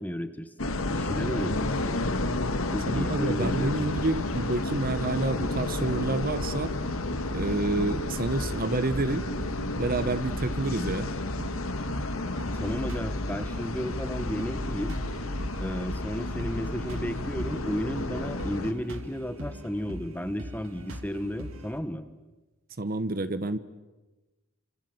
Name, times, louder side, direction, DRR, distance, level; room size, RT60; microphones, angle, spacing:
voice 1, 0.0-2.0 2.7-3.7 12.5-14.9 15.6-22.0, equal, 10° left, 10 dB, 1.5 m, -33 dB
sound 1, 0.6-18.7, left 2 dB, 75° left, 1.9 m, -31 dB
sound 2, 2.4-21.8, equal, 65° right, 2.6 m, -42 dB
voice 2, 2.9-6.7 7.3-9.3 9.8-11.1 22.8-23.6, right 2 dB, 45° right, 13 dB, 1.0 m, -28 dB
28.0 x 26.0 x 8.0 m, 1.1 s
head